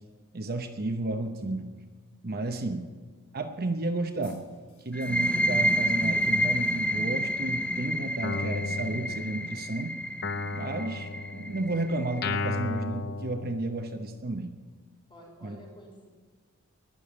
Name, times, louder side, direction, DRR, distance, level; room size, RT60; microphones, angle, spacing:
voice 1, 0.3-1.7 2.2-2.8 3.3-4.4 4.8-10.0 10.5-14.5 15.4-15.6, right 2 dB, 45° right, 6 dB, 0.9 m, -32 dB
voice 2, 2.4-2.7 15.1-16.1, equal, 25° left, -1 dB, 5.1 m, -50 dB
sound 1, 4.2-7.3, left 2 dB, 70° left, 6.1 m, -57 dB
sound 2, 4.9-12.4, equal, 5° left, 0.7 m, -29 dB
Guitar, 8.2-9.7 10.2-14.1, left 3 dB, 50° left, 0.7 m, -35 dB
20.5 x 7.0 x 8.8 m, 1.4 s
head